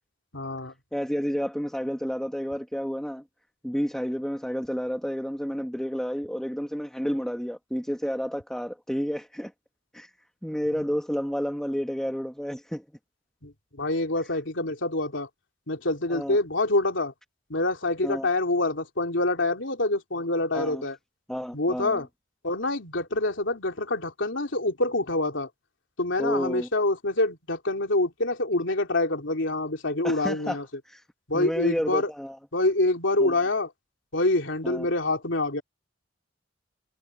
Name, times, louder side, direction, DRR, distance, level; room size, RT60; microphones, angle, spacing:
voice 1, 0.3-0.7 10.7-10.8 13.4-15.3 15.7-17.1 17.5-21.0 21.5-22.1 22.4-25.5 26.0-30.7 31.3-32.1 32.5-33.7 34.1-35.6, left 2 dB, 70° left, 3.5 m, -26 dB
voice 2, 0.9-3.2 3.6-9.5 9.9-10.1 10.4-12.8 16.1-16.4 18.0-18.3 20.5-20.8 21.3-22.0 26.2-26.7 30.0-30.6 30.9-31.0 31.3-32.4 33.2-33.4 34.6-34.9, equal, 5° left, 2.3 m, -30 dB
head